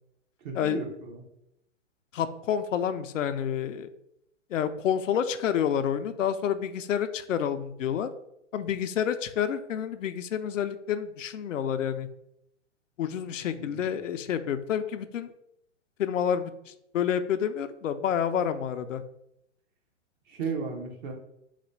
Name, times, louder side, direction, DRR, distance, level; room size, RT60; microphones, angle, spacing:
voice 1, 0.4-1.2 13.5-13.9 20.3-21.1, right 5 dB, 40° right, 3 dB, 0.9 m, -35 dB
voice 2, 2.1-3.9 4.5-8.1 8.5-12.1 13.0-15.3 16.0-19.0, left 8 dB, 80° left, 10 dB, 0.5 m, -29 dB
4.0 x 2.2 x 4.5 m, 0.80 s
hypercardioid pair, 125°, 38 cm